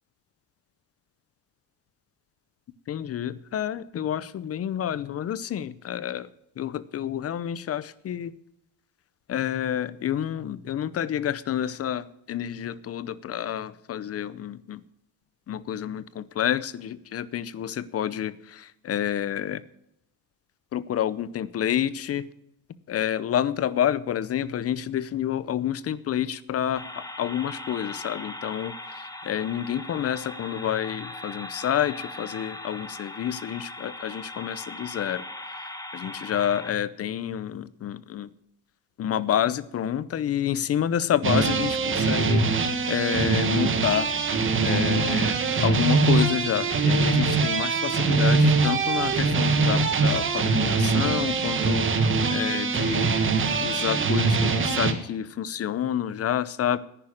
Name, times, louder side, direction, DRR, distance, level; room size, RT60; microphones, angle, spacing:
voice 1, 2.9-6.3 6.6-8.3 9.3-14.8 15.5-19.6 20.7-22.3 22.9-35.2 35.9-38.3 39.0-44.1 44.6-51.9 52.3-53.2 53.6-56.8, left 10 dB, 35° left, 18 dB, 0.7 m, -29 dB
sound 1, 26.7-36.7, left 1 dB, 10° left, 1.3 m, -39 dB
sound 2, 41.2-54.9, right 4 dB, 25° right, 1.5 m, -23 dB
10.5 x 10.0 x 8.6 m, 0.80 s
cardioid pair, 140°, 44 cm